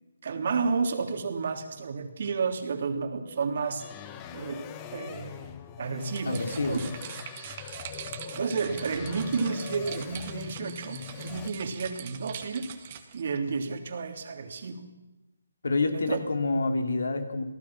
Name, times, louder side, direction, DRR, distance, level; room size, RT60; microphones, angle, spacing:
voice 1, 0.2-3.8 4.3-4.6 4.9-6.8 8.3-12.7 13.1-14.8 15.9-16.3, right 5 dB, 50° right, 5 dB, 3.1 m, -31 dB
sound 1, 3.8-11.5, left 8 dB, 20° left, 1.5 m, -42 dB
sound 2, 6.0-13.2, right 9 dB, 30° right, 2.0 m, -43 dB
voice 2, 6.3-6.8 15.6-17.4, left 3 dB, 75° left, 6 dB, 3.4 m, -27 dB
28.0 x 18.0 x 6.0 m, 1.0 s
hypercardioid pair, 160°, 0 cm